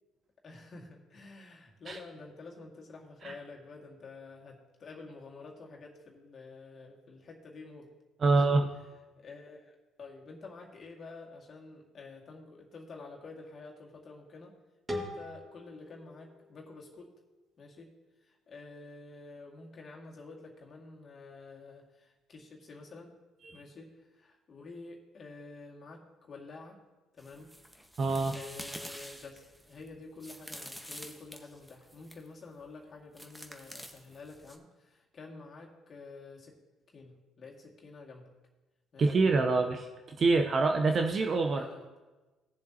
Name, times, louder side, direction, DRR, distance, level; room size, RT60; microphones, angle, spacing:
voice 1, 0.4-7.9 8.2-8.6 9.2-14.5 14.9-17.1 17.6-17.9 18.2-23.1 23.5-26.8 27.1-27.5 28.3-36.5 36.9-38.3 38.9-39.1 41.4-42.0, left 3 dB, 50° left, -1 dB, 2.0 m, -49 dB
voice 2, 8.2-8.7 23.4-23.6 28.0-28.4 39.0-41.6, right 3 dB, 45° right, 5 dB, 0.8 m, -26 dB
sound 1, 14.9-17.7, left 1 dB, 20° right, 1.9 m, -43 dB
sound 2, 27.2-32.3 33.2-34.6, equal, 5° right, 1.3 m, -47 dB
17.0 x 7.0 x 2.9 m, 1.2 s
hypercardioid pair, 60°, 0 cm